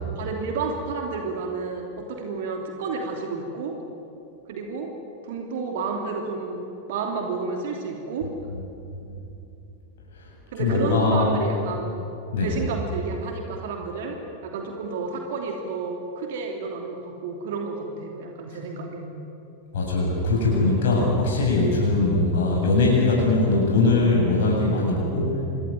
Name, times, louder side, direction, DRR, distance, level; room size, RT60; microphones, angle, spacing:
voice 1, 0.2-3.8 4.5-4.9 5.2-8.3 10.5-11.9 12.4-19.3, right 4 dB, 55° right, 2 dB, 3.0 m, -31 dB
voice 2, 10.6-11.4 12.3-12.5 19.7-25.5, left 2 dB, 60° left, -2 dB, 7.3 m, -21 dB
27.5 x 22.0 x 9.2 m, 2.8 s
figure-of-eight pair, 90°, 0 cm